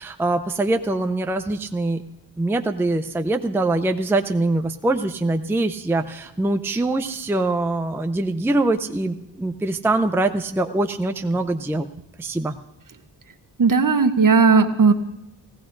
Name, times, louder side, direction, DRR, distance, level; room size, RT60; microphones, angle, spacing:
voice 1, 0.0-2.0 2.4-11.9 12.2-12.6, right 2 dB, 5° right, 7 dB, 0.5 m, -23 dB
voice 2, 13.6-14.9, right 4 dB, 50° right, 8 dB, 1.0 m, -16 dB
18.5 x 16.5 x 2.6 m, 0.87 s
cardioid pair, 60°, 42 cm